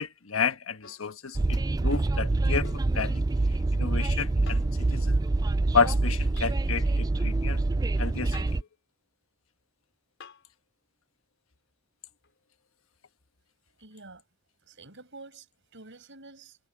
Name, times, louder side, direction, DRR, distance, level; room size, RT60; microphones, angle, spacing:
voice 1, 0.0-3.3 3.7-4.6 4.9-5.2 5.7-7.6 8.0-8.4, left 5 dB, 80° left, 1.3 m, -30 dB
sound 1, 0.8-1.1 2.6-2.9 4.5-4.8 6.4-6.6 8.3-8.7 10.2-10.5 12.2-12.3, left 5 dB, 65° left, 5.5 m, -49 dB
Train, 1.4-8.6, right 2 dB, 20° right, 0.3 m, -26 dB
voice 2, 13.8-14.2 14.6-15.5 15.7-16.6, right 3 dB, 65° right, 7.0 m, -48 dB
head